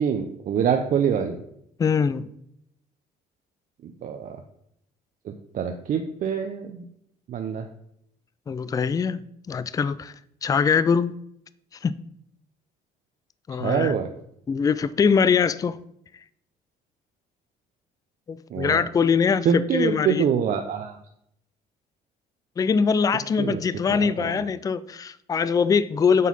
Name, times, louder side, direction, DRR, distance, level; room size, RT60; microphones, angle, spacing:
voice 1, 0.0-1.4 3.8-4.4 5.2-6.8 7.3-7.7 13.6-14.1 18.5-18.8 19.4-21.0 23.4-23.6 23.9-24.4, right 7 dB, 50° right, 0.6 m, -25 dB
voice 2, 1.8-2.3 8.5-9.2 9.5-10.1 10.4-11.1 11.8-12.0 13.5-13.9 14.5-15.8 18.3-20.2 22.6-26.3, left 6 dB, 20° left, 0.3 m, -22 dB
7.4 x 4.0 x 5.4 m
cardioid pair, 110°, 17 cm